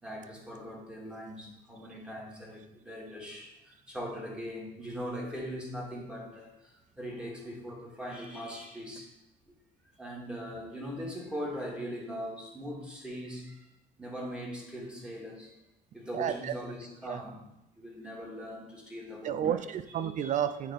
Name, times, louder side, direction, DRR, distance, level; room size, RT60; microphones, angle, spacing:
voice 1, 0.0-9.1 10.0-13.6 14.0-15.5 15.9-17.4 17.8-19.6 20.2-20.3, equal, 5° right, -4 dB, 2.3 m, -40 dB
voice 2, 16.1-16.5 17.1-17.2 19.2-20.7, right 9 dB, 45° right, 12 dB, 0.5 m, -31 dB
8.9 x 3.7 x 5.3 m, 0.92 s
cardioid pair, 110°, 17 cm